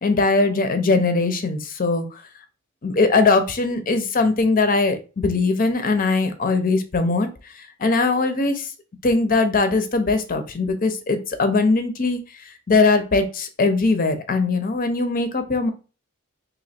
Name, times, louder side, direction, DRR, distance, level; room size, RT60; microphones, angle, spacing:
voice 1, 0.0-2.2 2.8-7.3 7.6-8.7 9.0-12.2 12.7-15.7, left 3 dB, 40° left, 8 dB, 0.6 m, -20 dB
2.9 x 2.7 x 4.2 m, 0.34 s
head